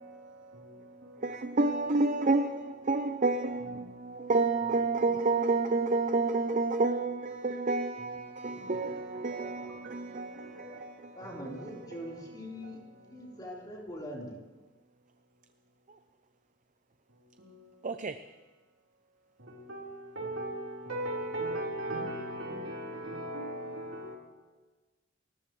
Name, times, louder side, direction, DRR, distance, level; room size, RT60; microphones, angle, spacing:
voice 1, 0.0-1.4 3.8-4.3 5.0-5.2 8.0-11.9 12.4-13.4 17.1-17.9 19.4-24.2, right 1 dB, 80° right, 4.2 m, -41 dB
voice 2, 1.2-12.0 17.8-18.3, right 3 dB, 40° right, 0.6 m, -30 dB
voice 3, 11.1-14.4, equal, 20° left, 4.3 m, -42 dB
29.0 x 14.5 x 3.3 m
head